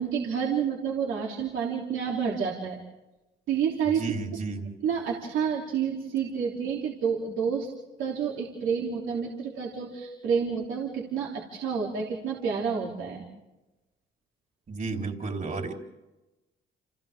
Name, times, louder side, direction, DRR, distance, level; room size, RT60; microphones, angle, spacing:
voice 1, 0.0-2.8 3.5-4.0 4.8-7.7 8.0-13.2, right 7 dB, 85° right, -3 dB, 3.2 m, -29 dB
voice 2, 3.9-4.7 14.7-15.7, right 3 dB, 40° right, 2 dB, 4.0 m, -32 dB
30.0 x 28.0 x 3.7 m, 1.0 s
cardioid pair, 90°, 20 cm